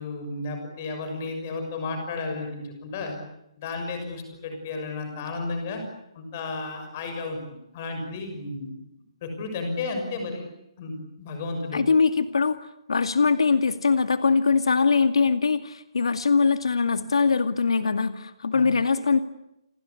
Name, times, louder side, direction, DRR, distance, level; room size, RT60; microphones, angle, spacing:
voice 1, 0.0-3.2 3.6-5.8 6.1-8.8 9.2-10.4 10.8-11.8 18.5-18.7, left 3 dB, 20° left, 5 dB, 6.4 m, -33 dB
voice 2, 11.7-12.6 12.9-19.2, left 5 dB, 85° left, 9 dB, 2.3 m, -22 dB
30.0 x 23.0 x 8.5 m, 0.83 s
hypercardioid pair, 180°, 3 cm